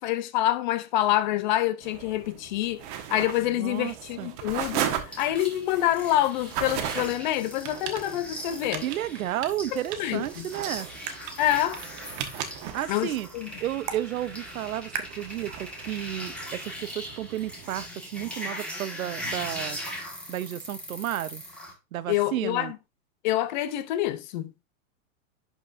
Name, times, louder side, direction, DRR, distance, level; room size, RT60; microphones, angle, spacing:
voice 1, 0.0-2.8 3.1-4.9 5.2-8.8 9.7-10.5 11.4-11.8 12.9-13.5 22.1-22.8 23.2-24.5, left 13 dB, 35° left, 0.5 m, -26 dB
sound 1, 1.8-17.9, right 9 dB, 40° right, 1.2 m, -38 dB
voice 2, 3.4-4.3 8.8-10.9 12.7-13.3 13.6-19.8 20.3-21.4 21.9-22.7, right 13 dB, 85° right, 0.7 m, -32 dB
sound 2, 5.1-21.7, equal, 5° left, 1.6 m, -40 dB
sound 3, 10.2-16.2, right 7 dB, 15° right, 0.4 m, -43 dB
11.0 x 4.6 x 2.5 m
hypercardioid pair, 145°, 41 cm